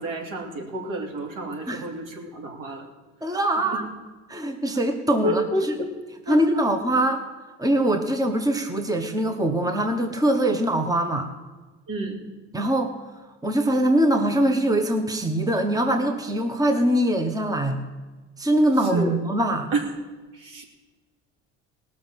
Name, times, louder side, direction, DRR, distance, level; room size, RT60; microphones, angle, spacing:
voice 1, 0.0-2.9 3.7-3.8 5.2-5.9 6.3-6.6 11.9-12.2 18.8-19.2 19.7-19.9 20.3-20.6, right 1 dB, 65° right, 1 dB, 3.0 m, -29 dB
voice 2, 3.2-3.9 4.3-5.4 6.3-7.2 7.6-11.3 12.5-12.9 13.4-17.8 18.4-19.7, right 1 dB, 10° right, 6 dB, 1.3 m, -22 dB
18.0 x 6.6 x 7.3 m, 1.3 s
supercardioid pair, 80°, 34 cm